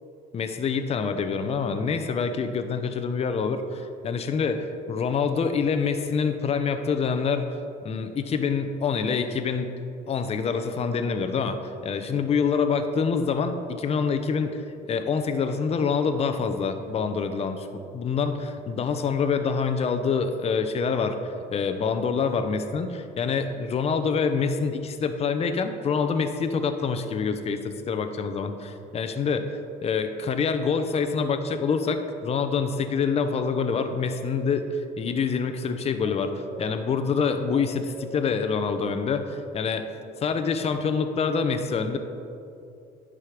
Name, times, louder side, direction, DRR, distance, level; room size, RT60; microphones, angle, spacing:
voice 1, 0.3-7.5 7.8-9.7 10.1-14.6 14.9-17.7 17.9-34.7 35.0-36.3 36.6-39.9 40.2-42.0, left 5 dB, 40° left, 8 dB, 0.7 m, -26 dB
sound 1, 33.9-34.5 36.0-36.7 37.5-38.2, right 5 dB, 75° right, 0.9 m, -43 dB
10.5 x 5.0 x 5.0 m, 2.6 s
cardioid pair, 110°, 17 cm